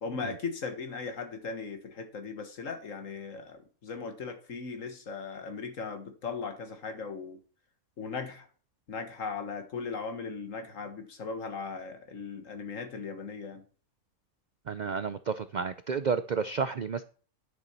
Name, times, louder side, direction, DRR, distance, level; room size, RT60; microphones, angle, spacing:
voice 1, 0.0-7.4 8.0-8.5 8.9-13.6, left 5 dB, 65° left, 1.9 m, -38 dB
voice 2, 14.7-17.0, right 5 dB, 75° right, 0.4 m, -31 dB
10.5 x 6.7 x 4.4 m
omnidirectional pair, 1.5 m